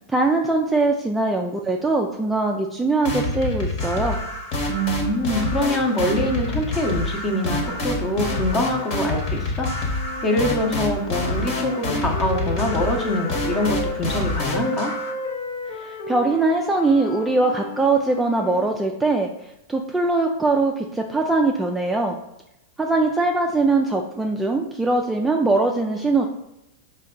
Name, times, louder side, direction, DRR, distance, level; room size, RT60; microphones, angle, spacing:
voice 1, 0.1-4.2 15.7-22.2 22.8-26.3, right 3 dB, 10° right, 1 dB, 0.3 m, -21 dB
sound 1, 3.0-15.1, left 1 dB, 50° left, 1.2 m, -27 dB
voice 2, 4.7-9.7 10.2-14.9, left 1 dB, 20° left, 3 dB, 0.7 m, -24 dB
sound 2, 9.9-14.0 14.5-18.7, left 2 dB, 75° left, 0.8 m, -33 dB
3.9 x 2.2 x 3.7 m, 0.86 s
hypercardioid pair, 125°, 0 cm